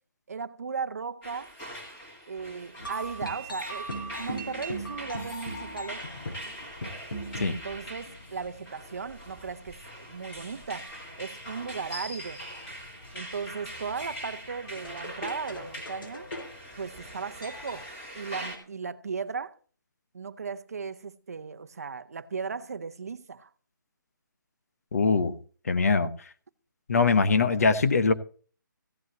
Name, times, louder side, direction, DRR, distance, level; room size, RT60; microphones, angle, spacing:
voice 1, 0.3-1.5 2.3-3.9 4.2-6.1 7.5-12.4 13.1-16.3 16.8-19.6 20.1-23.5, right 5 dB, 50° right, 0.8 m, -36 dB
sound 1, 1.2-18.6, equal, 10° left, 2.5 m, -43 dB
sound 2, 2.8-17.8, equal, 85° left, 4.9 m, -41 dB
voice 2, 24.9-25.4 25.6-26.1 26.9-28.1, left 4 dB, 45° left, 1.0 m, -22 dB
15.5 x 5.5 x 7.8 m
hypercardioid pair, 180°, 11 cm